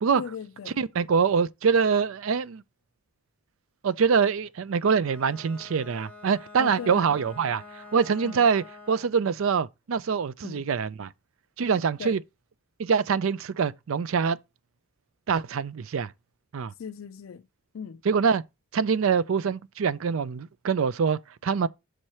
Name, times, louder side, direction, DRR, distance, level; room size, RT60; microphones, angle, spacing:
voice 1, 0.2-0.8 6.6-7.1 8.2-8.4 10.4-10.6 12.0-12.2 16.8-17.4 17.7-18.0, left 6 dB, 70° left, 0.4 m, -38 dB
voice 2, 0.8-2.6 3.8-11.1 11.6-12.2 12.8-14.4 15.3-16.1 16.5-16.7 18.0-18.4 18.7-21.7, right 6 dB, 70° right, 0.4 m, -24 dB
Bowed string instrument, 4.9-9.2, left 3 dB, 10° left, 1.2 m, -47 dB
6.4 x 4.8 x 4.3 m
head